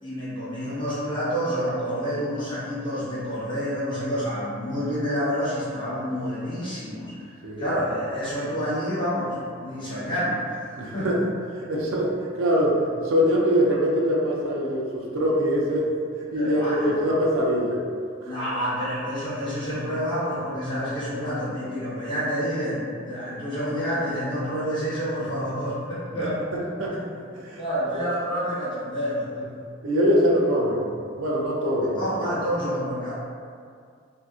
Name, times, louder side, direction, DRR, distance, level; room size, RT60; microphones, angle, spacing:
voice 1, 0.0-11.1 16.3-17.0 18.2-26.4 27.5-29.5 31.9-33.1, equal, 25° left, -12 dB, 1.0 m, -28 dB
voice 2, 10.8-11.2 11.5-15.9 16.2-17.8 18.2-18.3 26.5-27.0 27.4-27.6 29.8-30.9 31.2-32.3, equal, 85° right, -3 dB, 0.5 m, -23 dB
2.7 x 2.4 x 2.3 m, 2.2 s
head